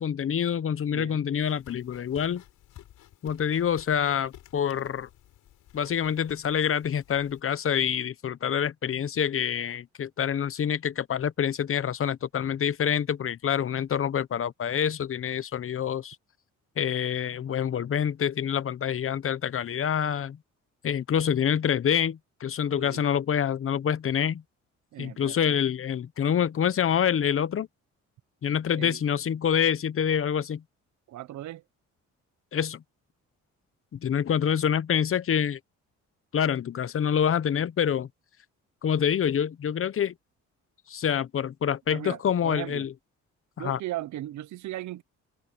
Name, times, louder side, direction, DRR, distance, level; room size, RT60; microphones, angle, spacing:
voice 1, 0.0-2.4 3.2-5.1 5.7-16.2 16.8-20.4 20.8-24.4 25.0-27.7 28.4-30.6 32.5-32.8 33.9-35.6 36.3-38.1 38.8-40.1 40.9-42.9 43.6-43.8, left 8 dB, 45° left, 0.9 m, -26 dB
voice 2, 0.9-1.2 22.8-23.0 24.9-25.4 28.7-29.0 31.1-31.6 41.9-42.9 43.6-45.0, right 15 dB, 70° right, 0.8 m, -37 dB
sound 1, 1.4-7.4, left 12 dB, 80° left, 5.8 m, -53 dB
cardioid pair, 90°, 30 cm